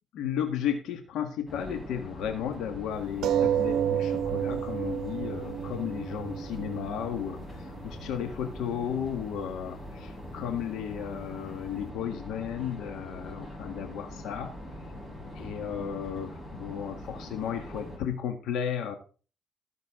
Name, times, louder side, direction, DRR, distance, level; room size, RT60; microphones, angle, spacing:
voice 1, 0.1-14.5 15.3-18.9, left 8 dB, 85° left, 7 dB, 1.7 m, -34 dB
sound 1, 1.5-18.0, left 1 dB, 20° left, 5.3 m, -43 dB
sound 2, 3.2-8.2 9.0-9.1 9.4-9.5, right 10 dB, 80° right, 0.7 m, -30 dB
17.5 x 6.5 x 3.8 m, 0.36 s
cardioid pair, 90°, 0 cm